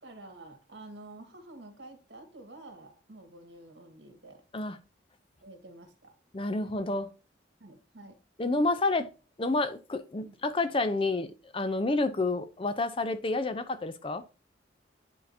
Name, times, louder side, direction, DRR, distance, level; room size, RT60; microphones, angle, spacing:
voice 1, 0.0-4.4 5.4-6.1 7.6-8.1 10.2-10.4, right 2 dB, 70° right, 1.8 m, -49 dB
voice 2, 6.3-7.1 8.4-9.1 9.4-11.3 11.5-14.2, left 2 dB, 30° left, 0.5 m, -29 dB
10.5 x 3.7 x 2.7 m
head